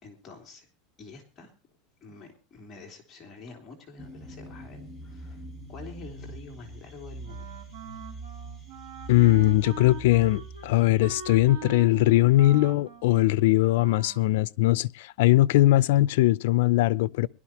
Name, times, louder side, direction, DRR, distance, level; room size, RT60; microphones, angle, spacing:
voice 1, 0.0-0.7 1.0-1.5 2.0-5.4 5.7-7.4, left 4 dB, 20° left, 3.0 m, -47 dB
sound 1, 4.0-12.6, right 2 dB, 10° right, 2.7 m, -43 dB
Wind instrument woodwind instrument, 7.2-14.3, right 8 dB, 80° right, 4.6 m, -43 dB
voice 2, 9.1-17.3, left 16 dB, 70° left, 0.6 m, -21 dB
22.5 x 12.5 x 2.9 m
supercardioid pair, 175°, 0 cm